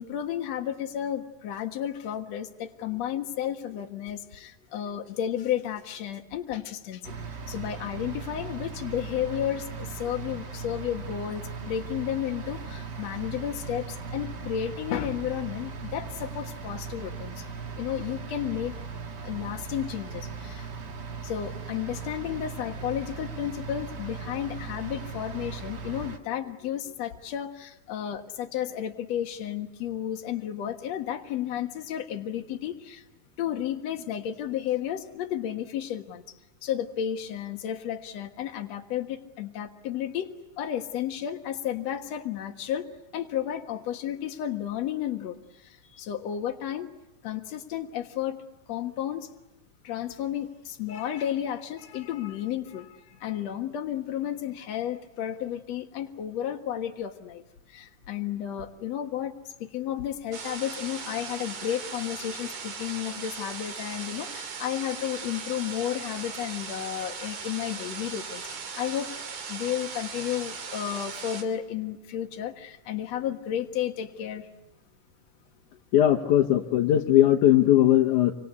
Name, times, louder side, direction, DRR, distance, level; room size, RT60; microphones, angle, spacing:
voice 1, 0.0-7.1 7.5-17.5 17.8-18.8 19.2-20.7 21.2-33.0 33.4-36.2 36.6-40.3 40.6-46.9 47.2-48.4 48.7-49.3 49.8-57.4 57.7-68.4 68.8-69.1 69.5-74.5, left 10 dB, 65° left, 4 dB, 2.7 m, -32 dB
sound 1, 7.0-26.2, right 5 dB, 40° right, 2.2 m, -38 dB
sound 2, 60.3-71.4, right 5 dB, 75° right, 4.1 m, -38 dB
voice 2, 75.9-78.3, left 12 dB, 90° left, 2 dB, 2.7 m, -19 dB
27.5 x 25.0 x 8.3 m, 0.93 s
omnidirectional pair, 3.4 m